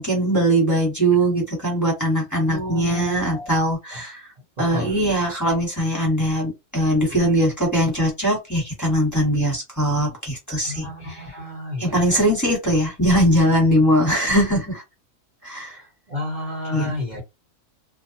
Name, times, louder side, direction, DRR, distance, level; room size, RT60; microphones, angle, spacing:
voice 1, 0.0-4.3 4.6-11.2 11.8-14.8 15.4-15.8 16.7-16.9, equal, 10° left, 1.4 m, -21 dB
voice 2, 2.4-3.6 4.6-4.9 10.6-12.2 16.1-17.2, left 1 dB, 30° right, 1.1 m, -31 dB
2.5 x 2.3 x 2.8 m
omnidirectional pair, 1.6 m